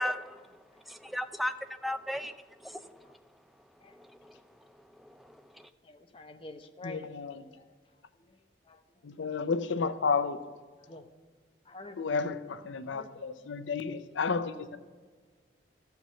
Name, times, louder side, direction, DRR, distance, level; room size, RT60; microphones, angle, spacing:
voice 1, 0.0-5.7, left 1 dB, ahead, 0.4 m, -38 dB
voice 2, 0.7-1.2 3.0-3.1 3.8-4.0 5.8-7.1 7.5-7.7 8.2-8.4 8.6-9.5 10.8-11.1 11.6-12.6 12.9-13.1, left 2 dB, 30° left, 0.7 m, -49 dB
voice 3, 6.8-7.4 9.0-10.4 12.0-14.8, left 5 dB, 85° left, 0.5 m, -31 dB
13.5 x 4.6 x 6.8 m
head